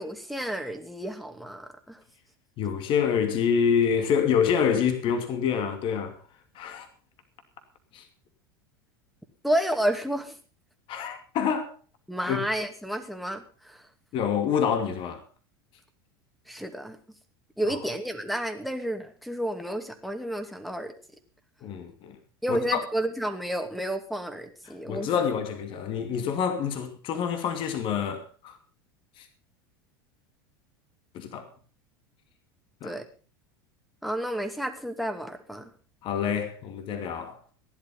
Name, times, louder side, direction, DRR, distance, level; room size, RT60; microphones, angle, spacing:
voice 1, 0.0-2.0 9.4-10.4 12.1-13.8 16.5-17.0 17.6-20.9 22.4-25.1 32.8-33.0 34.0-35.7, right 1 dB, ahead, 2.4 m, -31 dB
voice 2, 2.6-6.2 6.5-6.9 7.9-8.0 10.9-11.7 12.3-12.4 14.1-15.2 17.7-17.8 21.6-22.2 22.5-22.8 24.9-28.6 29.2-29.3 31.1-31.5 32.8-33.0 36.0-37.4, left 7 dB, 45° left, 2.6 m, -27 dB
16.0 x 11.0 x 5.6 m
hypercardioid pair, 85°, 12 cm